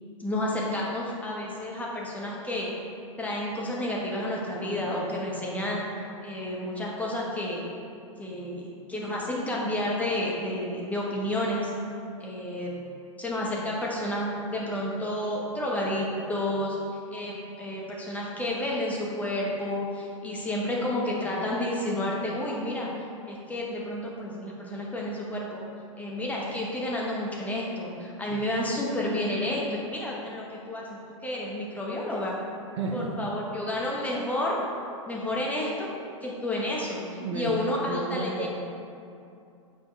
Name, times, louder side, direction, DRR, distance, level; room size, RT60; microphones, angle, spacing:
voice 1, 0.2-2.7 3.2-5.9 6.2-7.6 8.2-8.6 8.9-11.7 12.2-12.7 13.2-16.8 17.1-22.9 23.3-25.6 26.0-32.4 32.9-34.6 35.1-35.9 36.2-38.5, left 1 dB, 10° left, -4 dB, 1.1 m, -30 dB
voice 2, 32.8-33.1 37.2-37.5 37.8-38.5, right 4 dB, 55° right, 2 dB, 0.8 m, -32 dB
7.1 x 4.9 x 3.2 m, 2.5 s
hypercardioid pair, 105°, 17 cm